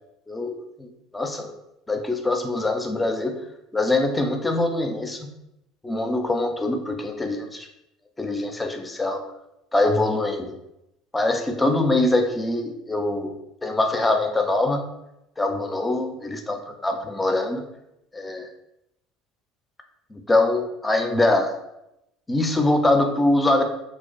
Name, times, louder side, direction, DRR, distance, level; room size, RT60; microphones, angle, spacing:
voice 1, 0.3-1.5 1.9-3.4 3.7-5.3 5.8-7.7 8.2-9.2 9.7-10.5 11.1-13.3 13.6-14.8 15.4-17.7 18.1-18.5 20.1-21.5 22.3-23.6, left 2 dB, 15° left, 5 dB, 0.4 m, -23 dB
2.5 x 2.3 x 2.2 m, 0.85 s
hypercardioid pair, 75°, 0 cm